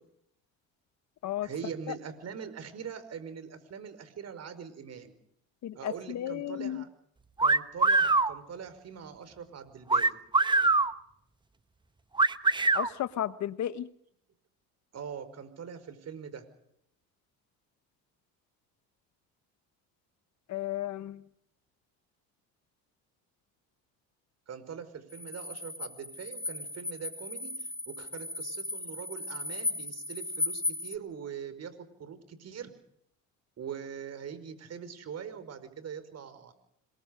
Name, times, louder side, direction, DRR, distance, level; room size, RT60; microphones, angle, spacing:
voice 1, 1.4-5.1 5.8-6.9 7.4-10.2 14.9-16.4 24.5-32.7 33.6-36.5, right 7 dB, 45° right, 11 dB, 5.2 m, -42 dB
voice 2, 5.6-6.8 12.7-13.9 20.5-21.2, left 12 dB, 55° left, 14 dB, 1.2 m, -34 dB
sound 1, 7.4-8.3 9.9-10.9 12.2-12.9, right 3 dB, 15° right, 1.0 m, -23 dB
sound 2, 25.1-30.9, left 3 dB, 20° left, 1.3 m, -36 dB
27.0 x 22.5 x 5.3 m, 0.73 s
cardioid pair, 110°, 35 cm